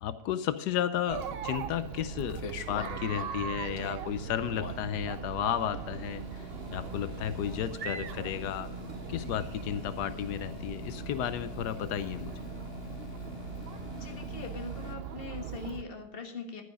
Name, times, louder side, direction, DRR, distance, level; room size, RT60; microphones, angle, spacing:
voice 1, 0.0-8.7 9.1-12.3, left 10 dB, 85° left, 12 dB, 1.2 m, -33 dB
Chatter, 1.1-15.8, right 8 dB, 55° right, 0.7 m, -40 dB
sound 1, 1.9-15.0, left 7 dB, 55° left, 1.1 m, -45 dB
voice 2, 14.0-16.6, left 5 dB, 35° left, 4 dB, 1.6 m, -41 dB
11.5 x 9.8 x 4.9 m, 0.89 s
omnidirectional pair, 1.7 m